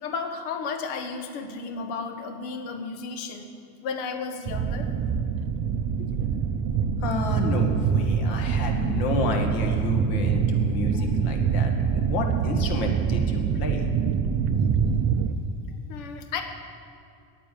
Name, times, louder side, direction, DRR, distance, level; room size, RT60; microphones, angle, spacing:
voice 1, 0.0-3.5 3.8-4.9 15.9-16.4, left 5 dB, 80° left, 6 dB, 1.5 m, -33 dB
sound 1, 4.5-15.3, right 6 dB, 35° right, 0.6 m, -25 dB
voice 2, 7.0-13.9, left 3 dB, 65° left, 3 dB, 1.9 m, -31 dB
9.8 x 9.2 x 9.1 m, 2.6 s
cardioid pair, 160°, 40 cm